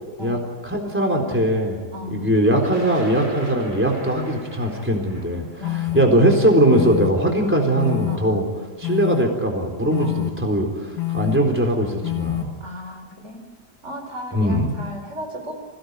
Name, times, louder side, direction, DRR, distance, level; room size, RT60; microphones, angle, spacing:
voice 1, 0.2-1.8 2.1-8.5 8.8-12.5 14.3-14.7, right 1 dB, 5° right, 1 dB, 3.9 m, -20 dB
voice 2, 1.9-2.3 5.5-6.3 8.1-8.6 10.0-10.5 12.6-13.5 13.8-15.5, equal, 45° right, 3 dB, 4.1 m, -35 dB
Thunder, 2.5-8.5 9.5-9.6 10.7-10.9 11.3-11.7, right 1 dB, 90° right, 7.0 m, -43 dB
sound 1, 4.9-5.0 5.6-6.0 6.7-7.1 7.8-8.2 8.8-9.2 9.9-10.3 11.0-11.4 12.0-12.4, left 15 dB, 80° left, 1.9 m, -25 dB
28.0 x 17.5 x 9.6 m, 1.4 s
omnidirectional pair, 1.7 m